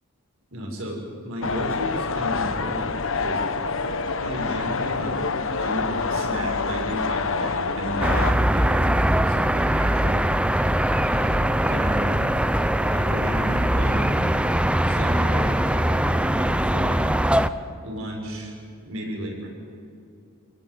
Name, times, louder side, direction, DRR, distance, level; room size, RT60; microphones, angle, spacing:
voice 1, 0.5-3.5 4.2-5.2 5.5-10.3 11.0-12.1 12.8-14.3 14.9-17.0 17.8-18.6 18.8-19.5, equal, 65° right, 0 dB, 6.7 m, -33 dB
sound 1, 1.4-8.3, left 4 dB, 60° left, 1.3 m, -26 dB
sound 2, 8.0-17.5, right 1 dB, 5° right, 0.6 m, -21 dB
29.0 x 17.0 x 9.6 m, 2.5 s
head